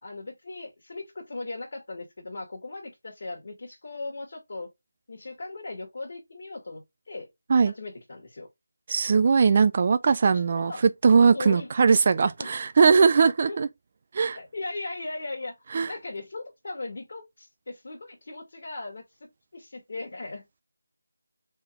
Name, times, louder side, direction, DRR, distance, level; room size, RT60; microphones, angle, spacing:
voice 1, 0.0-4.7 5.1-7.3 7.7-8.5 10.5-10.8 11.3-11.7 12.4-12.5 13.4-13.6 14.3-15.5 15.9-20.5, left 2 dB, 50° left, 1.8 m, -38 dB
voice 2, 8.9-13.7 14.1-14.4 15.7-15.9, right 5 dB, 35° right, 0.4 m, -20 dB
4.0 x 3.7 x 3.3 m
figure-of-eight pair, 170°, 0 cm